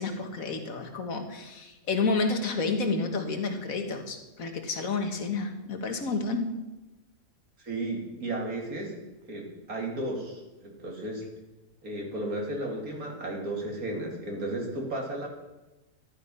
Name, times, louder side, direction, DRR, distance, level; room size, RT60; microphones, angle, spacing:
voice 1, 0.0-6.5, left 3 dB, 75° left, 5 dB, 1.9 m, -30 dB
voice 2, 7.6-8.9 9.3-11.3 11.8-15.3, right 1 dB, 85° right, 0 dB, 3.2 m, -34 dB
13.5 x 11.5 x 5.5 m, 1.0 s
omnidirectional pair, 1.5 m